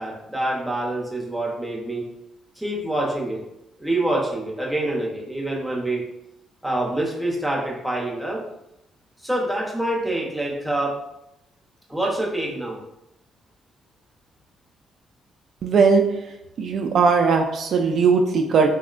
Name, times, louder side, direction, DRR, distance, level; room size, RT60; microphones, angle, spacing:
voice 1, 0.0-2.0 2.6-3.4 3.8-6.0 6.6-8.4 9.2-10.9 11.9-12.8, right 1 dB, ahead, -3 dB, 0.8 m, -26 dB
voice 2, 15.6-16.2 16.6-18.7, right 5 dB, 60° right, 3 dB, 0.3 m, -19 dB
3.5 x 2.1 x 2.4 m, 0.86 s
cardioid pair, 90°, 0 cm